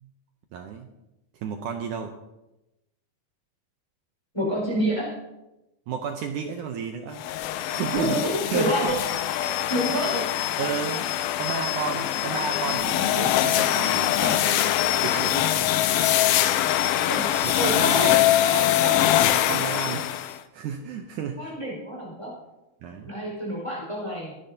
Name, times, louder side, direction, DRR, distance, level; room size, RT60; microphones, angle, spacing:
voice 1, 0.5-0.9 1.4-2.1 5.9-7.2 7.7-8.2 8.5-9.0 10.6-11.1 11.4-15.7 17.2-18.2 19.3-20.1 20.5-21.6 22.8-23.1, right 7 dB, 75° right, 5 dB, 2.0 m, -32 dB
voice 2, 4.3-5.1 8.0-9.1 9.7-10.4 17.1-19.0 21.4-22.3 23.1-24.3, equal, 10° left, -3 dB, 4.6 m, -28 dB
sound 1, 7.2-20.4, left 12 dB, 90° left, 2.5 m, -23 dB
23.0 x 10.5 x 2.8 m, 0.96 s
omnidirectional pair, 4.2 m